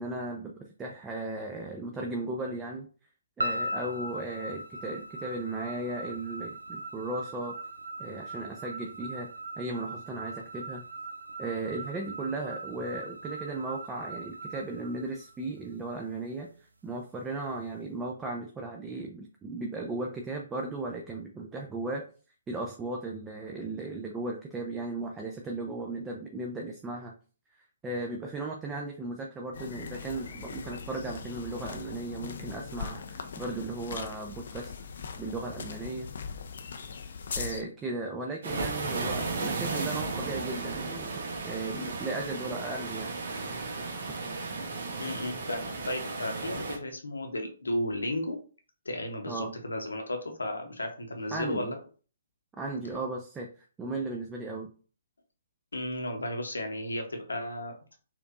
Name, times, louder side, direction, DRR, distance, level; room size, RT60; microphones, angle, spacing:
voice 1, 0.0-2.9 3.4-7.6 8.0-9.3 9.6-10.9 11.4-16.5 16.8-22.1 22.5-27.1 27.8-34.7 35.2-36.1 37.4-41.1 41.4-43.1 49.3-49.5 51.3-51.7 52.6-54.7, right 2 dB, 15° right, 1 dB, 0.5 m, -36 dB
sound 1, 3.4-15.7, right 1 dB, 75° right, 0.4 m, -39 dB
sound 2, 29.5-37.6, left 5 dB, 60° left, 0.4 m, -40 dB
sound 3, 38.4-46.8, right 3 dB, 55° right, 0.9 m, -34 dB
voice 2, 45.0-48.4 48.8-51.8 55.7-58.0, left 1 dB, 75° left, 4 dB, 0.9 m, -34 dB
4.4 x 2.6 x 2.5 m, 0.39 s
figure-of-eight pair, 130°, 0 cm